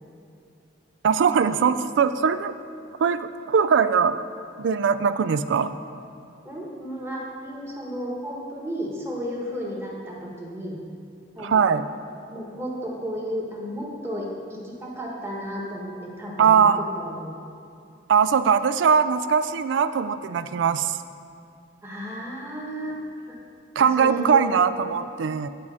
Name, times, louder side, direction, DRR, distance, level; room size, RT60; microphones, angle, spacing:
voice 1, 1.0-2.5 3.0-4.2 4.6-5.7 11.4-11.9 16.4-16.8 18.1-21.0 23.8-25.5, right 6 dB, 65° right, 13 dB, 0.3 m, -21 dB
voice 2, 6.4-10.8 11.3-11.8 12.3-17.3 21.8-23.4 23.8-25.1, equal, 15° right, -4 dB, 1.2 m, -33 dB
9.6 x 4.8 x 5.5 m, 2.5 s
head